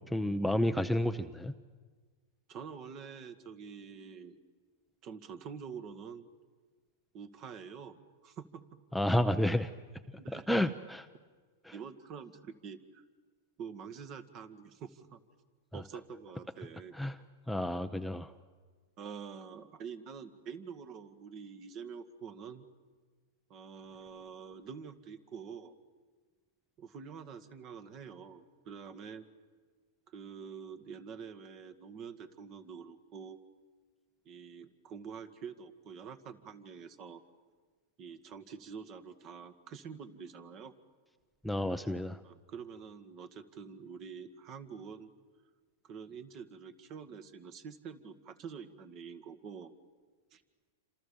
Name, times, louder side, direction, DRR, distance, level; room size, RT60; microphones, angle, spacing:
voice 1, 0.1-1.5 8.9-9.7 10.3-11.1 11.7-11.8 17.0-17.1 17.5-18.3 41.4-42.2, left 1 dB, ahead, 8 dB, 0.8 m, -30 dB
voice 2, 2.5-4.4 5.0-6.3 7.1-8.6 10.2-10.5 11.7-13.0 13.6-15.2 15.7-16.9 19.0-22.7 23.5-25.8 26.8-29.2 30.1-33.4 34.3-37.2 38.0-40.7 42.2-45.1 45.8-49.7 50.3-50.4, right 6 dB, 40° right, 11 dB, 2.0 m, -46 dB
28.0 x 26.5 x 7.2 m, 1.5 s
hypercardioid pair, 120°, 0 cm